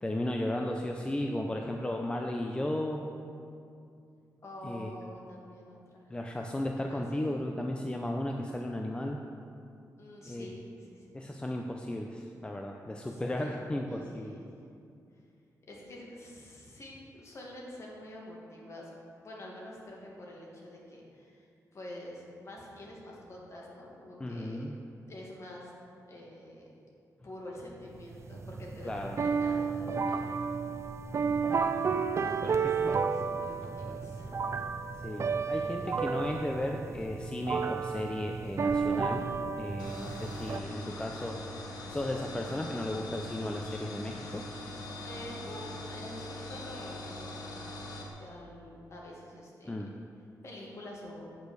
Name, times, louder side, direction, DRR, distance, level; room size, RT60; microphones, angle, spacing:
voice 1, 0.0-3.0 4.6-4.9 6.1-9.2 10.2-10.5 11.1-14.4 24.2-24.7 28.8-29.2 32.4-32.6 35.0-39.3 39.5-41.4 41.9-44.4 49.7-49.9, left 1 dB, 15° left, 2 dB, 0.5 m, -35 dB
voice 2, 4.4-6.1 6.9-7.0 7.3-7.4 10.0-11.1 13.1-14.5 15.7-18.9 19.2-24.6 25.1-25.7 26.1-26.7 27.2-30.5 32.2-34.5 45.0-47.8 48.2-49.8 50.4-51.3, left 1 dB, 45° left, -3 dB, 2.0 m, -47 dB
sound 1, 28.0-40.6, right 5 dB, 45° right, 0.4 m, -32 dB
sound 2, 39.8-48.1, left 2 dB, 85° left, 1.2 m, -42 dB
8.3 x 5.0 x 6.6 m, 2.4 s
cardioid pair, 95°, 7 cm